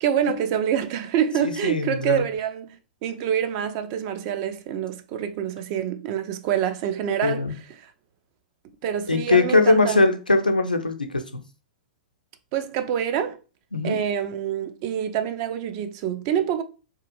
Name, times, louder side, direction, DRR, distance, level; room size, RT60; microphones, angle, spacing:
voice 1, 0.0-7.5 7.8-7.9 8.8-10.1 12.5-13.4 13.8-16.6, right 9 dB, 40° right, 0.3 m, -26 dB
voice 2, 1.4-2.3 7.2-7.6 9.1-11.4 13.7-14.0, left 3 dB, 85° left, 0.4 m, -21 dB
2.7 x 2.3 x 2.5 m
figure-of-eight pair, 105°, 5 cm